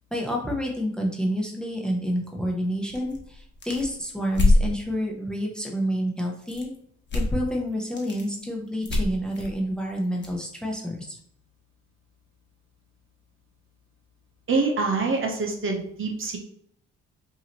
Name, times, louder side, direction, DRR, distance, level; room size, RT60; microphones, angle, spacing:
voice 1, 0.1-6.7 7.1-11.2, equal, 5° left, 0 dB, 0.9 m, -29 dB
sound 1, 2.9-4.7 6.4-6.8 7.1-7.4 7.7-8.3 8.8-10.3, left 2 dB, 35° left, 1.1 m, -24 dB
voice 2, 14.5-16.4, right 3 dB, 45° right, 2 dB, 0.9 m, -25 dB
4.7 x 2.9 x 2.9 m, 0.66 s
cardioid pair, 90°, 30 cm